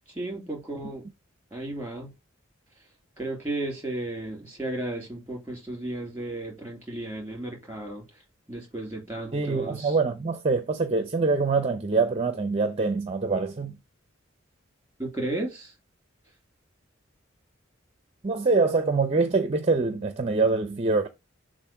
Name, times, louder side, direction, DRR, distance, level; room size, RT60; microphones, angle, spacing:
voice 1, 0.1-1.0 1.5-2.1 3.2-8.0 8.5-10.0 15.0-15.7, right 2 dB, 10° right, 3.4 m, -34 dB
voice 2, 9.3-13.8 18.2-21.1, right 4 dB, 30° right, 0.6 m, -24 dB
7.3 x 2.6 x 5.7 m
head